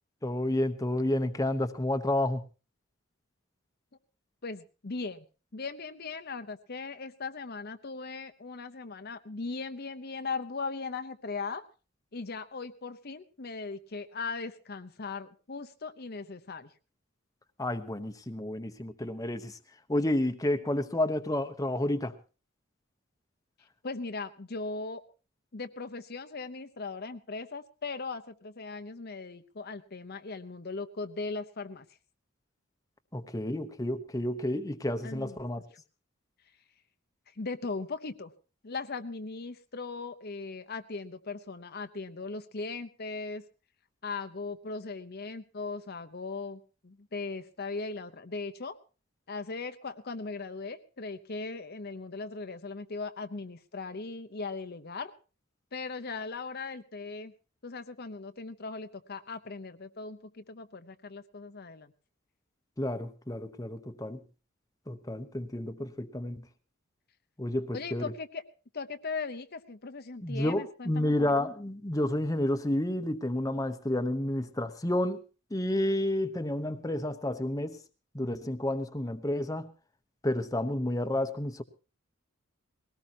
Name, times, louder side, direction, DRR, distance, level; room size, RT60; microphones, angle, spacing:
voice 1, 0.2-2.4 17.6-19.6 19.9-22.1 33.1-35.6 62.8-64.2 64.9-66.5 67.4-68.1 70.2-75.2 75.5-77.8 78.1-79.7 80.2-81.6, left 1 dB, 15° left, 0.9 m, -30 dB
voice 2, 4.4-5.3 5.5-11.6 12.1-16.7 23.8-25.0 25.5-31.9 35.0-35.4 37.3-38.3 38.6-43.4 44.0-48.8 49.3-55.1 55.7-57.3 57.6-61.9 67.7-68.4 68.7-71.1, left 4 dB, 50° left, 0.8 m, -38 dB
20.5 x 18.0 x 2.9 m
head